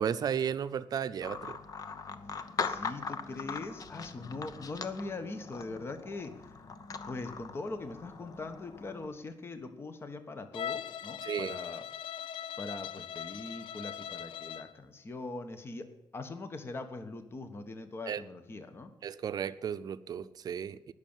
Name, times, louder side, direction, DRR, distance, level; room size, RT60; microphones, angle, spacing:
voice 1, 0.0-1.6 11.2-11.6 18.1-18.2 19.0-20.9, right 8 dB, 50° right, 12 dB, 0.7 m, -34 dB
sound 1, 1.2-9.1, left 5 dB, 45° left, 1.0 m, -41 dB
voice 2, 2.6-6.3 7.1-11.8 12.6-18.9, left 3 dB, 30° left, 8 dB, 1.3 m, -41 dB
Bowed string instrument, 10.5-14.8, left 9 dB, 90° left, 0.5 m, -40 dB
19.5 x 6.7 x 7.3 m, 0.94 s
wide cardioid pair, 155°, 8 cm